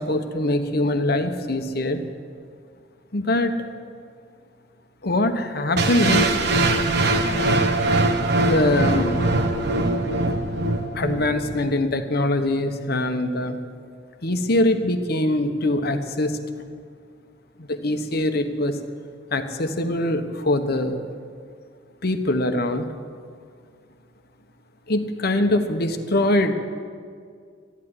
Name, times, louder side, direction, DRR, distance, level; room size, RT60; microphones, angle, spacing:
voice 1, 0.0-2.0 3.1-3.5 5.0-6.2 8.4-9.2 10.9-13.6 14.2-16.4 17.6-18.7 19.3-21.0 22.0-22.9 24.9-26.5, left 1 dB, 55° left, 7 dB, 1.2 m, -23 dB
sound 1, 5.8-11.8, right 2 dB, 60° right, 1.2 m, -22 dB
13.0 x 11.0 x 9.8 m, 2.2 s
head